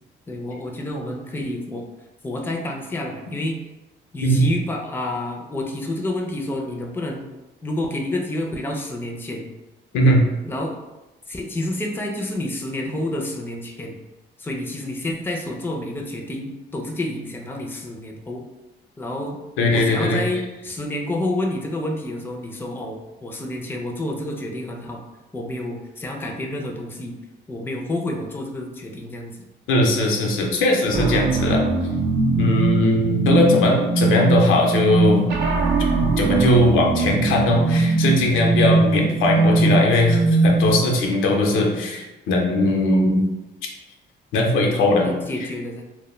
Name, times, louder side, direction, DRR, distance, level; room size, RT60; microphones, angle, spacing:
voice 1, 0.3-1.8 2.2-3.6 4.1-7.3 7.6-9.5 10.4-10.8 11.3-14.0 14.4-18.4 19.0-19.4 19.7-25.0 25.3-27.2 27.5-29.4 38.9-39.5 44.6-45.8, left 1 dB, 10° left, 1 dB, 0.4 m, -29 dB
voice 2, 19.6-20.2 29.7-31.6 32.3-35.2 36.0-43.2 44.3-45.1, left 1 dB, 90° left, 0 dB, 0.5 m, -19 dB
sound 1, 30.9-40.9, right 3 dB, 55° right, 0.4 m, -20 dB
2.1 x 2.1 x 3.0 m, 1.0 s
cardioid pair, 90°, 20 cm